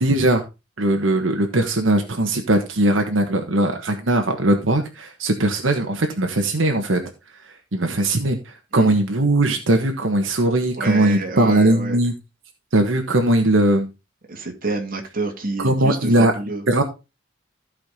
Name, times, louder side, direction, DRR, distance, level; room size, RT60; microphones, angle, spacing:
voice 1, 0.0-0.4 0.8-7.0 7.4-12.1 12.7-13.9 15.6-16.3 16.7-16.8, right 1 dB, 80° right, 1.4 m, -19 dB
voice 2, 10.8-12.0 14.3-16.6, right 3 dB, 45° right, 2.3 m, -28 dB
15.0 x 5.1 x 3.7 m
head